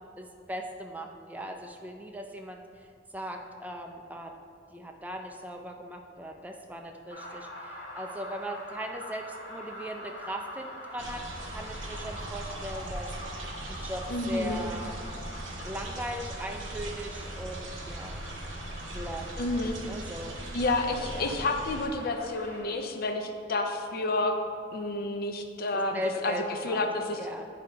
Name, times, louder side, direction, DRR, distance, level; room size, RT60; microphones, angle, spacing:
voice 1, 0.2-2.9 3.1-4.3 4.7-13.1 13.7-15.0 15.6-18.3 18.9-19.3 19.6-20.4 21.1-21.3 25.7-26.9 27.2-27.5, right 1 dB, 10° right, 3 dB, 0.4 m, -39 dB
sound 1, 7.1-22.6, equal, 80° left, 1.5 m, -44 dB
sound 2, 11.0-21.9, right 1 dB, 80° right, 0.8 m, -40 dB
voice 2, 14.1-14.6 19.4-19.8 20.5-24.3 24.7-26.4 26.6-27.2, left 2 dB, 50° left, 5 dB, 0.5 m, -30 dB
8.3 x 2.8 x 5.0 m, 2.3 s
head